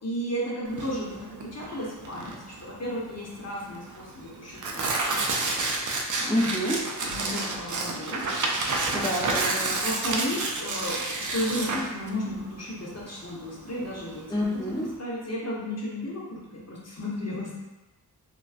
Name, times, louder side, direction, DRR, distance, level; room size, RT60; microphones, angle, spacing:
voice 1, 0.0-5.2 6.2-6.7 7.0-8.2 9.6-17.6, equal, 40° left, -5 dB, 0.9 m, -34 dB
Tearing, 0.7-14.9, right 3 dB, 50° right, 0.5 m, -30 dB
voice 2, 6.3-6.9 8.9-9.8 14.3-14.8, left 1 dB, 10° left, -5 dB, 0.4 m, -28 dB
2.3 x 2.2 x 2.4 m, 1.0 s
cardioid pair, 45°, 41 cm